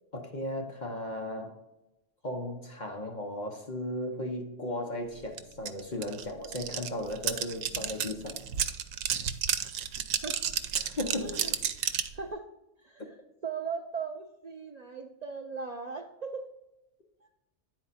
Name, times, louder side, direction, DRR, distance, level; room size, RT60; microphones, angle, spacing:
voice 1, 0.1-1.6 2.2-8.5 10.7-11.5, left 1 dB, 40° left, 2 dB, 0.9 m, -36 dB
sound 1, 5.4-5.5 5.7-12.1, right 9 dB, 85° right, 1.0 m, -31 dB
voice 2, 11.2-11.5 12.1-12.5 12.8-13.2 13.4-16.5, right 5 dB, 65° right, 4 dB, 0.4 m, -38 dB
9.8 x 4.4 x 4.1 m, 0.97 s
omnidirectional pair, 1.3 m